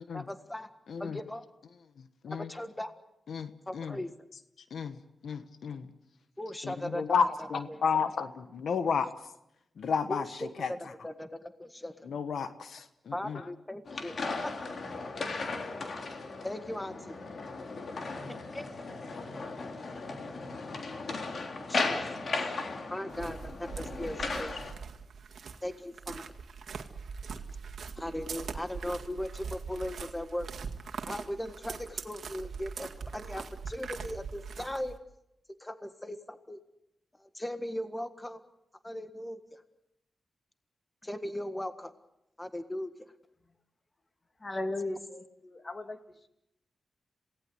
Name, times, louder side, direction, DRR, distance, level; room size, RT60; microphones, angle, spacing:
voice 1, 0.1-0.7 1.0-1.5 2.3-2.9 3.7-4.1 6.4-8.1 10.1-12.1 13.1-14.2 14.4-14.5 16.4-17.2 18.3-18.8 21.6-22.4 22.9-24.6 25.6-26.3 28.0-30.5 31.1-35.0 35.6-36.6 37.2-38.4 38.8-39.6 41.0-41.9 42.4-42.9, left 1 dB, 15° left, 9 dB, 1.6 m, -38 dB
voice 2, 3.3-4.0 4.7-4.9 5.2-5.9 6.6-9.1 9.8-10.2 10.6-10.7 12.1-13.4, left 6 dB, 80° left, 10 dB, 1.3 m, -31 dB
sound 1, 13.9-24.7, left 3 dB, 60° left, 3.3 m, -36 dB
sound 2, 23.1-35.0, right 5 dB, 75° right, 2.0 m, -42 dB
voice 3, 44.4-46.0, left 2 dB, 35° left, 6 dB, 2.6 m, -36 dB
27.5 x 18.0 x 8.2 m, 0.84 s
cardioid pair, 75°, 0 cm